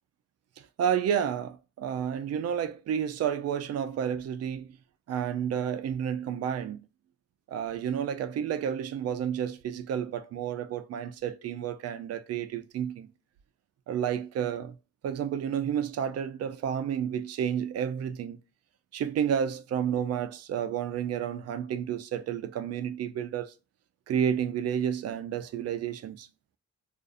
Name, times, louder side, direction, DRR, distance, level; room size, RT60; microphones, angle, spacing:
voice 1, 0.6-4.7 5.1-6.8 7.5-13.1 13.9-14.7 15.0-18.4 18.9-23.5 24.1-26.3, right 8 dB, 55° right, 0.4 m, -31 dB
2.5 x 2.4 x 2.4 m
cardioid pair, 90°, 30 cm